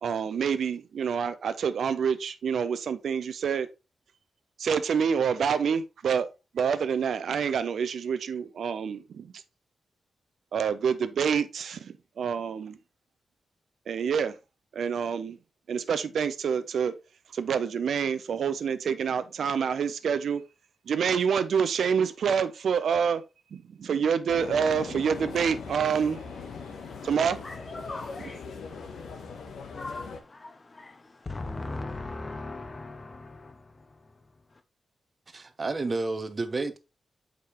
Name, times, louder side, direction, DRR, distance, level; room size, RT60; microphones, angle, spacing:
voice 1, 0.0-3.7 4.6-6.3 6.5-9.3 10.5-12.8 13.9-14.3 14.7-15.4 15.7-16.9 17.3-20.4 20.9-23.2 23.5-26.2 27.0-27.4 28.2-28.3, right 7 dB, 70° right, 0.5 m, -27 dB
sound 1, 24.3-30.2, left 5 dB, 80° left, 1.1 m, -40 dB
voice 2, 27.4-33.9, left 2 dB, 25° left, 0.5 m, -40 dB
voice 3, 35.3-36.8, right 3 dB, 30° right, 0.7 m, -30 dB
6.6 x 5.1 x 2.9 m
wide cardioid pair, 160°, 0 cm